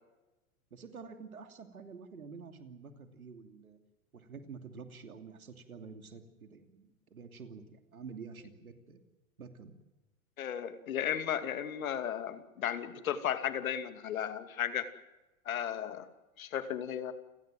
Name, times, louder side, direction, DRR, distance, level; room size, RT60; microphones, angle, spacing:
voice 1, 0.7-3.8 4.1-9.0 9.4-9.7, right 5 dB, 90° right, 7 dB, 2.9 m, -48 dB
voice 2, 10.4-14.9 15.4-16.1 16.4-17.1, left 9 dB, 75° left, 10 dB, 2.6 m, -35 dB
29.5 x 17.5 x 7.8 m, 1.1 s
hypercardioid pair, 100°, 42 cm